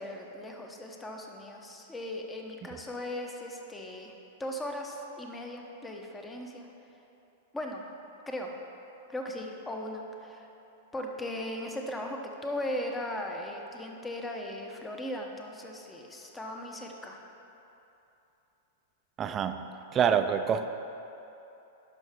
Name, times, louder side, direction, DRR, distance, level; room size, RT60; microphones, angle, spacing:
voice 1, 0.0-4.1 4.4-6.7 7.5-7.8 8.3-8.5 9.1-10.5 10.9-17.2, left 1 dB, 10° left, 2 dB, 0.9 m, -38 dB
voice 2, 19.2-19.6 19.9-20.7, right 7 dB, 30° right, 9 dB, 0.4 m, -26 dB
11.0 x 5.6 x 3.6 m, 2.9 s
hypercardioid pair, 115°, 0 cm